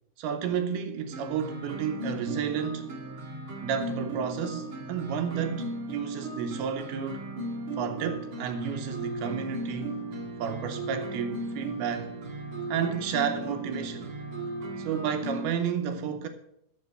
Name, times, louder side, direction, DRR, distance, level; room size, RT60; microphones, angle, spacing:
voice 1, 0.2-2.9 3.6-7.2 7.8-10.0 10.4-12.1 12.7-14.1 14.8-16.3, right 7 dB, 80° right, 2.4 m, -31 dB
sound 1, 1.1-15.5, right 2 dB, 50° right, 1.5 m, -36 dB
13.0 x 5.9 x 7.6 m
omnidirectional pair, 5.0 m